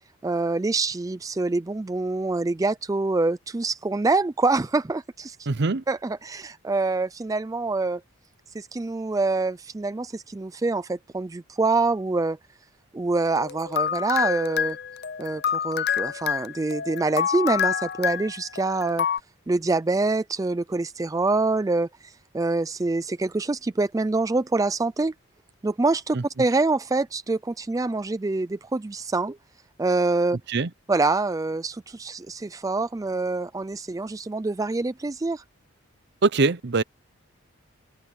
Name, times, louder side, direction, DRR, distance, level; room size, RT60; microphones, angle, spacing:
voice 1, 0.2-5.5 5.9-8.0 8.5-12.4 12.9-14.8 15.2-19.1 19.5-25.1 25.6-29.4 29.8-30.4 30.9-35.4, right 3 dB, 15° right, 0.3 m, -25 dB
voice 2, 5.5-5.8 26.1-26.2 30.5-30.7 36.2-36.8, right 3 dB, 50° right, 0.7 m, -22 dB
sound 1, 13.3-19.2, left 8 dB, 45° left, 0.5 m, -27 dB
head